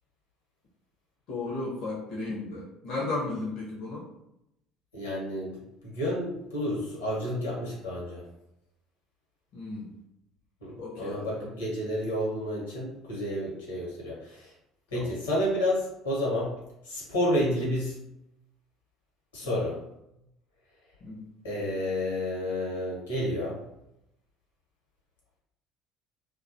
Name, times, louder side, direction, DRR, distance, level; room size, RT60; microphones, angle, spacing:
voice 1, 1.3-4.1 9.5-9.9 10.8-11.5 14.9-15.1 19.4-19.7 21.0-21.3, left 2 dB, 55° left, -4 dB, 0.6 m, -35 dB
voice 2, 4.9-5.5 5.8-8.2 10.6-14.5 14.9-16.5 16.8-18.0 19.3-19.8 21.4-23.6, left 1 dB, 80° left, -4 dB, 0.9 m, -30 dB
2.3 x 2.2 x 2.6 m, 0.84 s
figure-of-eight pair, 60°, 0 cm